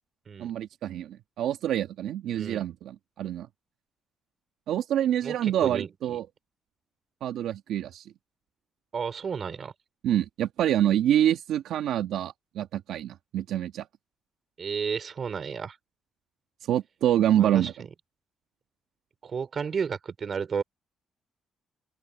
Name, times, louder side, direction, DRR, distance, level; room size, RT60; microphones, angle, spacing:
voice 1, 0.4-3.5 4.7-6.3 7.2-8.1 10.0-13.9 16.7-17.7, right 11 dB, 80° right, 1.8 m, -26 dB
voice 2, 5.2-6.2 8.9-9.7 14.6-15.8 17.3-17.7 19.2-20.6, right 6 dB, 45° right, 3.8 m, -32 dB
open air
cardioid pair, 90°, 0 cm